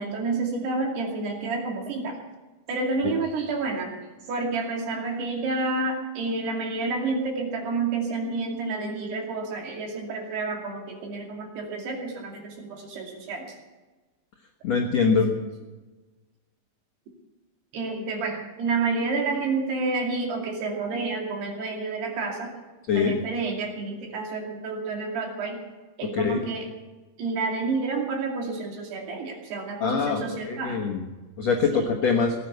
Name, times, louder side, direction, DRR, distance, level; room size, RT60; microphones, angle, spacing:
voice 1, 0.0-2.2 2.7-4.0 4.3-13.5 15.0-15.3 17.7-22.5 23.0-25.6 26.0-26.7 27.2-30.9 31.7-31.9, right 3 dB, 65° right, 1 dB, 4.5 m, -29 dB
voice 2, 14.6-15.3 22.9-23.1 26.1-26.4 29.8-31.0 31.4-32.3, left 5 dB, 70° left, 1 dB, 1.6 m, -23 dB
18.0 x 10.0 x 8.0 m, 1.2 s
omnidirectional pair, 5.1 m